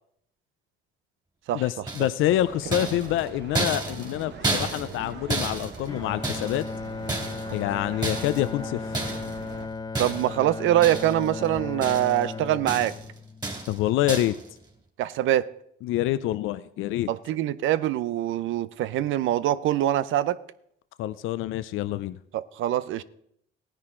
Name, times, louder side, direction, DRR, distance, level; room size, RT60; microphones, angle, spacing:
voice 1, 1.5-6.6 7.5-9.0 13.7-14.3 15.8-17.1 21.0-22.2, left 13 dB, 90° left, 0.5 m, -26 dB
sound 1, 1.9-2.3 2.7-6.7 7.1-7.6 8.0-8.5 8.9-9.4 10.0-10.4 10.8-11.3 11.6-12.3 12.7-13.1 13.4-13.8 14.1-14.4, right 2 dB, 20° right, 2.9 m, -31 dB
sound 2, 2.2-9.7, right 6 dB, 60° right, 1.3 m, -43 dB
Bowed string instrument, 5.9-14.1, left 4 dB, 20° left, 0.6 m, -36 dB
voice 2, 10.0-12.9 15.0-15.5 17.1-20.4 22.3-23.0, right 13 dB, 85° right, 0.6 m, -24 dB
16.0 x 9.9 x 3.8 m
cardioid pair, 90°, 20 cm